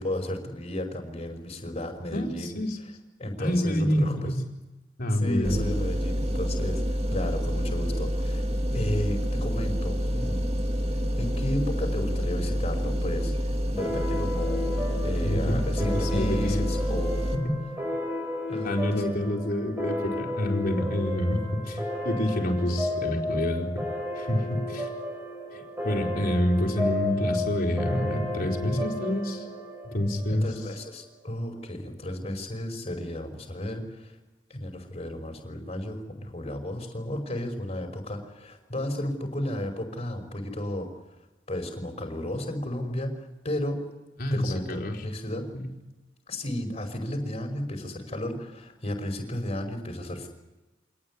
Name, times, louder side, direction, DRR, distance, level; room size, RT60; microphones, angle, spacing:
voice 1, 0.0-2.6 3.2-4.3 5.2-6.8 7.1-8.5 8.7-10.6 11.2-17.3 18.5-19.3 30.3-34.1 34.5-40.9 41.5-43.8 44.3-45.5 46.3-50.3, left 1 dB, 35° left, 4 dB, 5.4 m, -33 dB
voice 2, 2.1-2.8 3.4-4.4 5.0-5.6 15.2-16.7 17.3-17.6 18.6-23.7 24.2-24.9 25.5-29.5 29.8-30.5 44.2-45.0 45.5-45.7, left 1 dB, 50° left, 1 dB, 4.3 m, -27 dB
sound 1, 5.4-17.4, equal, 35° right, 2.2 m, -28 dB
sound 2, 13.8-30.9, left 2 dB, 10° right, 5.9 m, -33 dB
26.5 x 19.0 x 9.7 m, 1.1 s
head